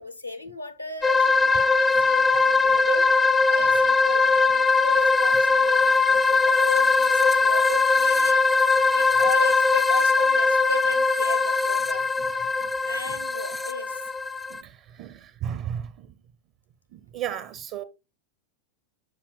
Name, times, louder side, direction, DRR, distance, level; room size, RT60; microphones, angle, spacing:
voice 1, 0.0-3.1 3.5-8.4 8.9-12.1 12.8-14.0, left 2 dB, 85° left, 0.9 m, -35 dB
sound 1, 1.0-14.6, left 4 dB, 10° left, 0.3 m, -21 dB
voice 2, 14.5-16.1 16.9-17.8, right 9 dB, 40° right, 0.5 m, -34 dB
9.4 x 5.7 x 2.2 m
figure-of-eight pair, 90°, 0 cm